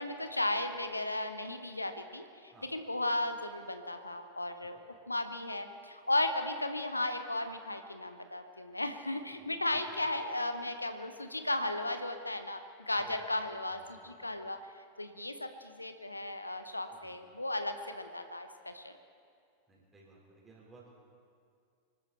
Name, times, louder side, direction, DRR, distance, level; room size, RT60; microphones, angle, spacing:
voice 1, 0.0-4.8 5.1-19.0, left 1 dB, 85° left, 8 dB, 0.9 m, -35 dB
voice 2, 2.5-2.8 4.9-5.0 9.3-9.8 12.9-13.3 13.7-14.1 16.9-17.2 19.7-20.9, right 3 dB, 15° right, -3 dB, 4.5 m, -59 dB
24.5 x 13.0 x 4.4 m, 2.3 s
figure-of-eight pair, 90°, 0 cm